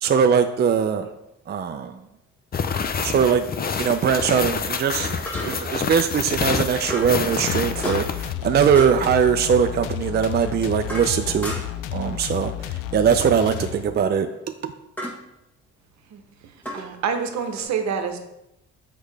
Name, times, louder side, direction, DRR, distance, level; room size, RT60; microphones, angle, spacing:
voice 1, 0.0-1.1 1.5-2.0 3.0-3.5 3.7-5.1 5.4-11.6 11.9-14.3 14.6-14.7, right 7 dB, 35° right, 7 dB, 0.4 m, -21 dB
sound 1, 1.6-1.7 5.3-5.8 6.9-7.2 7.8-8.3 8.7-9.1 10.3-11.9 13.3-13.7 15.0-15.2 16.6-17.6, equal, 5° left, 1.3 m, -34 dB
sound 2, 2.5-8.3, left 6 dB, 30° left, 0.5 m, -27 dB
sound 3, 7.4-14.1, left 12 dB, 80° left, 0.5 m, -32 dB
voice 2, 16.1-18.2, right 6 dB, 65° right, 6 dB, 0.9 m, -28 dB
6.3 x 4.9 x 3.3 m, 0.87 s
supercardioid pair, 75°, 30 cm